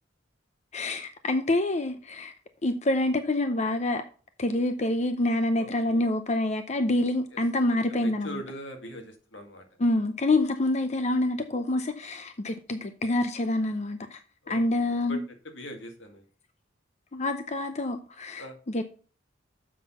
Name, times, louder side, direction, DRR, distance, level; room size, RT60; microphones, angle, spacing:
voice 1, 0.7-2.3 2.6-4.0 4.4-8.4 9.8-14.2 14.5-15.2 17.1-18.8, left 2 dB, 35° left, 0.6 m, -27 dB
voice 2, 5.6-6.0 7.9-9.6 14.4-14.6 15.1-15.2 15.5-16.2 18.4-18.6, equal, 70° left, 2.0 m, -41 dB
7.4 x 6.0 x 5.5 m
head